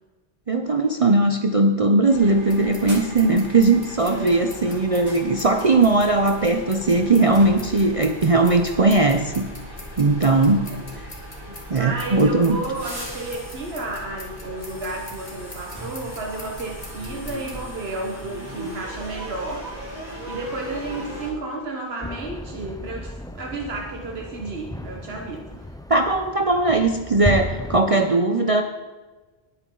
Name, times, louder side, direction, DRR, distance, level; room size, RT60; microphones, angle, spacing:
voice 1, 0.5-9.5 10.0-10.7 11.0-11.1 11.7-12.6 25.9-28.6, right 2 dB, 40° right, 6 dB, 0.7 m, -19 dB
sound 1, 2.1-21.3, equal, 20° right, 4.8 m, -38 dB
sound 2, 2.5-17.6, left 1 dB, 60° left, 2.6 m, -43 dB
voice 2, 4.0-4.5 10.8-10.9 11.7-19.7 20.2-25.7, right 2 dB, 80° right, 1 dB, 1.6 m, -32 dB
sound 3, 22.0-27.8, left 1 dB, 5° left, 0.3 m, -33 dB
19.5 x 8.8 x 3.9 m, 1.2 s
omnidirectional pair, 1.0 m